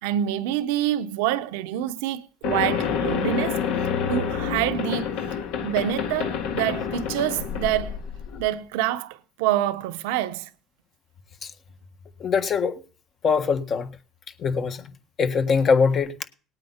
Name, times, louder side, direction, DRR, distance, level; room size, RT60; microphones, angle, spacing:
voice 1, 0.0-3.6 4.1-5.1 5.6-8.0 8.4-10.5, right 12 dB, 85° right, 0.7 m, -26 dB
sound 1, 2.4-8.4, left 7 dB, 80° left, 1.8 m, -28 dB
voice 2, 12.2-12.8 13.2-13.9 14.4-14.8 15.2-16.1, left 5 dB, 45° left, 1.6 m, -22 dB
19.0 x 8.9 x 4.3 m
supercardioid pair, 90°, 0 cm